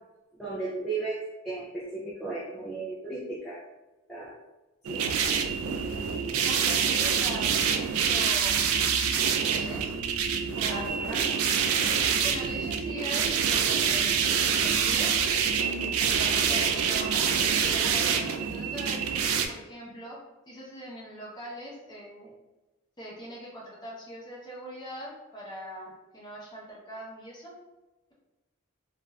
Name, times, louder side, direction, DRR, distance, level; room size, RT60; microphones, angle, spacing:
voice 1, 0.4-3.6 4.1-4.3 4.9-5.0 10.7-11.3 16.5-16.6, right 3 dB, ahead, -9 dB, 0.4 m, -35 dB
sound 1, 4.8-19.5, right 7 dB, 80° right, 0.3 m, -26 dB
voice 2, 6.4-8.6 9.1-9.9 10.5-11.2 12.2-15.2 16.0-17.3 17.6-19.2 19.5-20.2 20.5-22.3 23.0-27.5, equal, 20° left, -5 dB, 0.7 m, -41 dB
2.5 x 2.3 x 3.2 m, 1.1 s
head